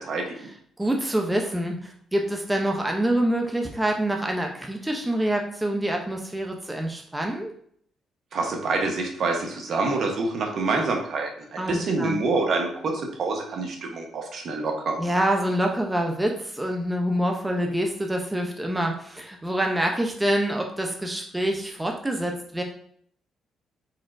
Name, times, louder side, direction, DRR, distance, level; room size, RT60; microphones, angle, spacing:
voice 1, 0.0-0.3 8.3-12.9 13.2-15.0, right 3 dB, 60° right, 2 dB, 1.1 m, -26 dB
voice 2, 0.8-7.5 11.6-12.2 15.0-22.6, right 1 dB, 10° right, 2 dB, 0.7 m, -26 dB
4.3 x 4.3 x 2.6 m, 0.63 s
cardioid pair, 90°, 0 cm